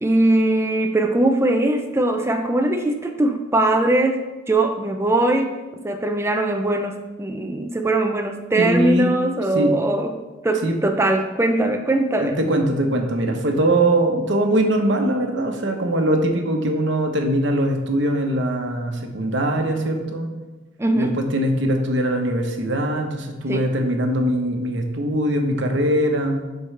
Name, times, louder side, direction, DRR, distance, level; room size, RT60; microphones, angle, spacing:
voice 1, 0.0-5.5 5.8-10.2 10.4-12.4 20.8-21.2 23.5-23.7, right 2 dB, 15° right, 5 dB, 0.4 m, -21 dB
voice 2, 8.6-9.1 9.5-9.7 10.6-10.8 12.1-20.3 20.9-26.4, right 1 dB, 65° right, 3 dB, 1.0 m, -21 dB
11.0 x 4.6 x 3.3 m, 1.2 s
head